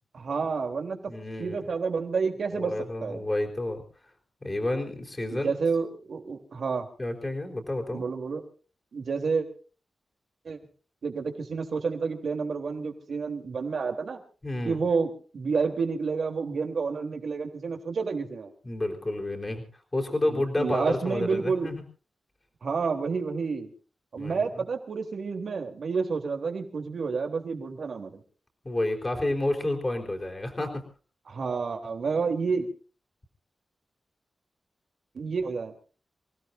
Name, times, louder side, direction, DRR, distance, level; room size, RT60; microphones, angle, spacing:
voice 1, 0.1-2.7 3.0-3.2 5.3-6.9 7.9-8.4 8.9-9.5 10.4-10.6 11.0-14.2 14.6-18.5 20.3-21.7 22.6-23.7 24.1-28.2 31.3-32.7 35.1-35.7, right 5 dB, 65° right, 4 dB, 3.4 m, -29 dB
voice 2, 1.1-1.6 2.5-3.8 4.4-5.5 7.0-8.0 14.4-14.8 18.6-19.6 19.9-21.8 24.2-24.6 28.6-30.8, left 1 dB, 25° left, 1 dB, 4.1 m, -30 dB
27.5 x 17.0 x 2.7 m, 0.38 s
wide cardioid pair, 110°, 0 cm